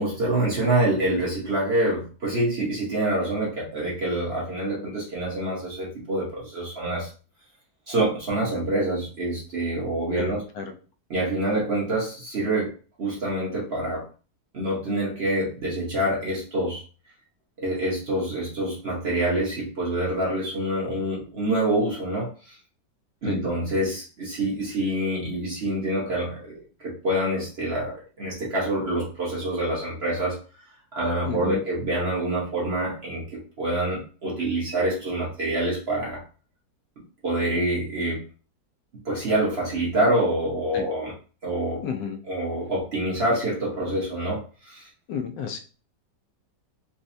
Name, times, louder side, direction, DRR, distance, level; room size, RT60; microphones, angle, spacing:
voice 1, 0.0-7.1 7.9-10.4 11.1-12.7 13.0-14.0 14.5-16.8 17.6-22.5 23.2-30.4 30.9-36.2 37.2-38.2 39.0-41.1 41.4-41.8 42.3-44.9, right 1 dB, 40° right, -5 dB, 1.1 m, -26 dB
voice 2, 10.2-10.7 23.3-23.4 31.2-31.6 40.7-40.9 41.8-42.2 45.1-45.6, left 7 dB, 80° left, 6 dB, 1.2 m, -32 dB
4.2 x 2.2 x 2.6 m, 0.36 s
omnidirectional pair, 1.9 m